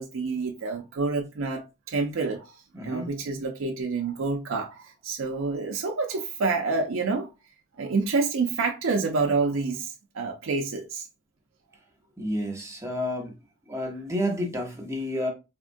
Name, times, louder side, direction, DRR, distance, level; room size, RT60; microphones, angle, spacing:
voice 1, 0.0-2.5 2.8-7.3 7.8-11.1, right 4 dB, 75° right, 0.5 m, -28 dB
voice 2, 2.7-3.1 12.2-13.4 13.7-15.3, left 1 dB, 15° right, 0.7 m, -30 dB
3.5 x 2.1 x 2.5 m
head